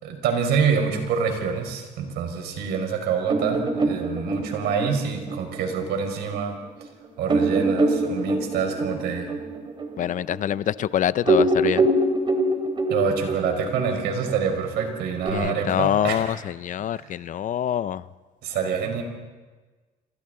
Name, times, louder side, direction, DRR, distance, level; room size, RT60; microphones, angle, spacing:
voice 1, 0.0-6.6 7.2-9.3 12.9-16.4 16.9-17.1 18.4-19.0, right 6 dB, 80° right, 4 dB, 4.7 m, -26 dB
sound 1, 3.3-6.4 6.8-6.9 7.3-10.9 11.2-15.3, right 2 dB, 30° right, 3.1 m, -24 dB
voice 2, 10.0-11.8 15.3-18.0, left 10 dB, 50° left, 17 dB, 0.6 m, -25 dB
27.5 x 26.5 x 3.8 m, 1.3 s
cardioid pair, 110°, 17 cm